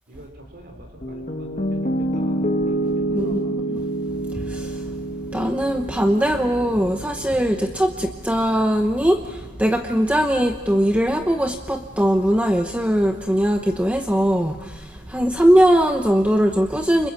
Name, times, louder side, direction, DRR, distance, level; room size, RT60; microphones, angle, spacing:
voice 1, 0.1-3.6 15.0-15.4, right 1 dB, 50° right, 3 dB, 3.9 m, -45 dB
Piano, 1.0-9.1, right 1 dB, 35° left, 2.5 m, -28 dB
voice 2, 4.3-4.8 5.3-17.1, equal, 5° right, 5 dB, 1.0 m, -20 dB
30.0 x 27.0 x 7.4 m, 1.2 s
head